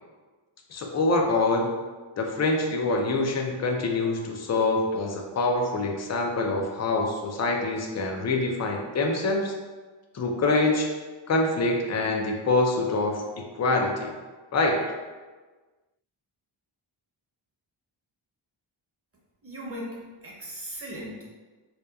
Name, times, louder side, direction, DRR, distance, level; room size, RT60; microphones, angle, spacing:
voice 1, 0.7-1.7 2.2-9.5 10.1-10.9 11.3-14.1 14.5-14.9, left 2 dB, 35° left, 2 dB, 0.4 m, -25 dB
voice 2, 19.4-20.0 20.2-21.2, equal, 30° right, -4 dB, 0.7 m, -37 dB
2.8 x 2.1 x 2.3 m, 1.3 s
cardioid pair, 55°, 50 cm